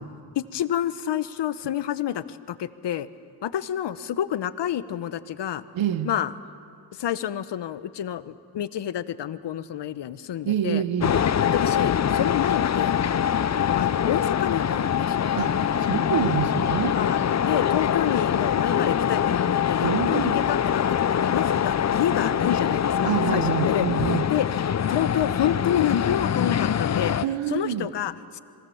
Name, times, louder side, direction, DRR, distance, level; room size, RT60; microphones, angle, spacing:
voice 1, 0.4-3.1 3.4-5.6 6.0-6.3 7.0-10.8 11.5-13.0 13.8-15.4 16.9-24.0 24.3-27.1 27.5-28.4, left 10 dB, 65° left, 14 dB, 1.1 m, -29 dB
voice 2, 5.7-6.1 10.4-11.1 15.4-17.0 19.8-20.4 23.0-24.2 27.2-27.9, right 9 dB, 75° right, 11 dB, 1.3 m, -26 dB
sound 1, 11.0-27.3, left 8 dB, 35° left, 0.7 m, -24 dB
27.0 x 21.0 x 7.2 m, 2.3 s
supercardioid pair, 60°, 46 cm